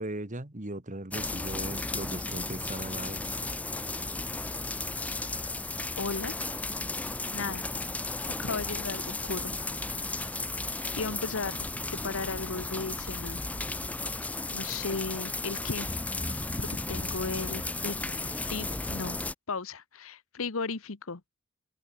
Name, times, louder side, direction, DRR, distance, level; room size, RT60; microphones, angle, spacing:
voice 1, 0.0-3.4, right 1 dB, 35° right, 1.9 m, -38 dB
sound 1, 1.1-19.3, left 2 dB, 5° left, 0.3 m, -34 dB
voice 2, 6.0-6.3 7.3-7.6 8.4-9.5 11.0-11.6 11.9-13.4 14.5-15.9 16.6-19.2 19.5-21.3, left 4 dB, 65° left, 1.0 m, -35 dB
open air
head